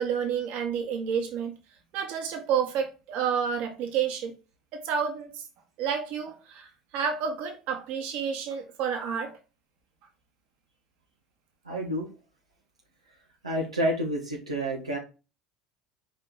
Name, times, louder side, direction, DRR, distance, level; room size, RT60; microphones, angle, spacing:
voice 1, 0.0-1.5 1.9-4.3 4.7-5.4 5.8-9.4, right 7 dB, 55° right, 1.9 m, -30 dB
voice 2, 11.6-12.1 13.4-15.0, equal, 90° right, 1.5 m, -29 dB
5.3 x 4.3 x 5.8 m
figure-of-eight pair, 65°, 3 cm